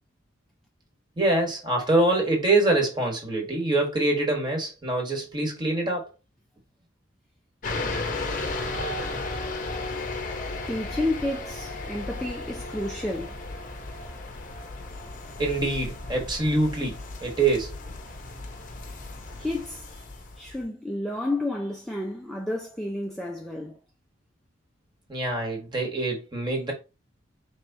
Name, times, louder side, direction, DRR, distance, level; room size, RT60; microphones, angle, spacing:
voice 1, 1.2-6.1 15.4-17.8 25.1-26.7, right 2 dB, 25° right, 1.4 m, -25 dB
sound 1, 7.6-20.6, left 2 dB, 40° left, 0.7 m, -35 dB
voice 2, 10.7-13.4 19.4-20.1 20.4-23.8, left 1 dB, ahead, 0.5 m, -31 dB
4.7 x 3.5 x 2.7 m
head